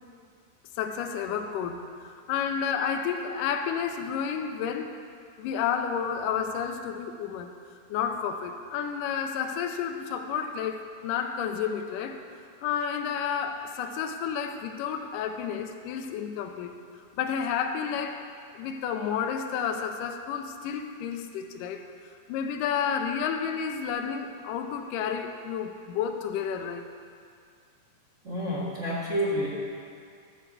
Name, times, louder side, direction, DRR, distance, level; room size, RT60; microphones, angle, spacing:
voice 1, 0.8-4.9 5.4-7.5 7.9-12.2 12.6-16.7 17.2-18.3 18.5-21.8 22.3-26.9, left 7 dB, 85° left, 5 dB, 2.2 m, -31 dB
voice 2, 28.2-29.5, equal, 30° right, -8 dB, 1.5 m, -29 dB
13.0 x 4.5 x 7.5 m, 2.3 s
omnidirectional pair, 3.9 m